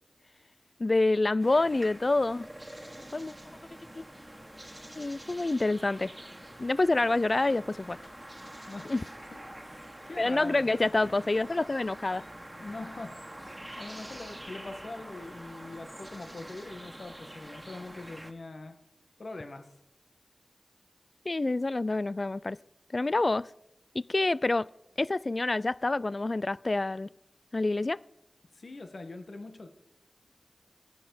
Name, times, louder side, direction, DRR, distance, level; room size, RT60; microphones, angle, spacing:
voice 1, 0.8-2.5 3.1-3.3 3.9-4.0 4.9-6.1 6.6-8.0 8.9-9.0 10.2-12.2 21.3-22.6 22.9-23.5 23.9-24.7 25.0-27.1 27.5-28.0, left 2 dB, 50° left, 0.4 m, -27 dB
sound 1, 1.4-18.3, right 1 dB, 15° right, 1.7 m, -46 dB
voice 2, 8.7-9.0 9.3-10.7 12.6-18.7 19.2-19.7 28.5-29.7, left 2 dB, 70° left, 1.6 m, -43 dB
15.0 x 10.0 x 7.0 m
cardioid pair, 45°, 0 cm